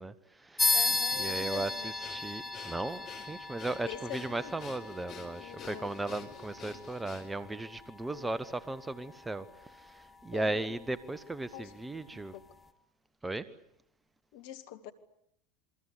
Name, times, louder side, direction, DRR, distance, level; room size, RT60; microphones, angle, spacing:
voice 1, 0.0-0.7 1.2-12.4 13.2-13.5, right 2 dB, 10° right, 1.5 m, -37 dB
sound 1, 0.6-10.6, left 3 dB, 10° left, 2.4 m, -36 dB
voice 2, 0.7-1.9 3.9-4.5 5.4-5.9 8.1-8.3 10.3-10.7 11.5-11.7 12.1-12.4 14.3-14.9, left 11 dB, 60° left, 2.2 m, -44 dB
Breathing, 2.0-7.5, left 7 dB, 45° left, 5.3 m, -49 dB
28.0 x 23.5 x 8.5 m
figure-of-eight pair, 80°, 0 cm